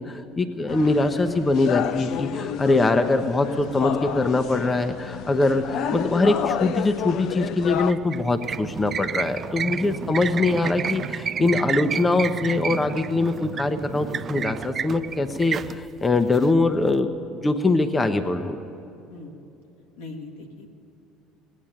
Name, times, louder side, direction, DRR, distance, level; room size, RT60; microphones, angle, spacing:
voice 1, 0.0-18.6, left 2 dB, 25° left, 7 dB, 0.8 m, -23 dB
sound 1, 0.7-7.9, left 9 dB, 60° left, 0.6 m, -30 dB
sound 2, 7.6-17.0, right 7 dB, 40° right, 0.3 m, -31 dB
voice 2, 19.1-19.4 20.0-20.7, left 3 dB, 80° left, 2 dB, 1.6 m, -40 dB
17.0 x 9.2 x 8.8 m, 2.9 s
hypercardioid pair, 70°, 0 cm